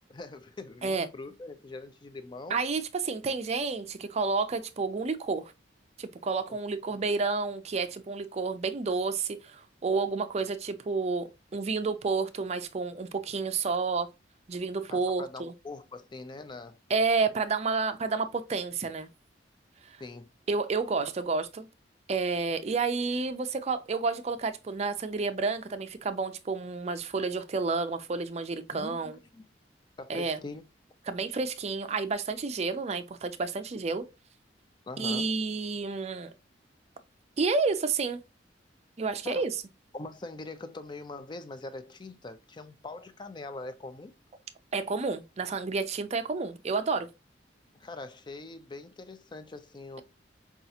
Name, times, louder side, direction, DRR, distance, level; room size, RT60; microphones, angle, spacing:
voice 1, 0.1-2.6 6.5-6.6 6.8-7.0 14.9-16.8 20.0-20.3 28.7-29.4 30.0-30.6 34.9-35.3 39.2-39.5 39.9-44.1 47.7-50.0, left 2 dB, 25° left, 0.4 m, -42 dB
voice 2, 2.5-5.5 6.0-14.1 14.5-15.5 16.9-19.1 19.9-20.0 20.5-21.7 22.1-29.2 30.1-30.4 31.1-34.1 35.0-36.3 37.4-38.2 39.0-39.6 44.7-47.1, right 4 dB, 35° right, 0.4 m, -30 dB
5.2 x 2.4 x 2.7 m
head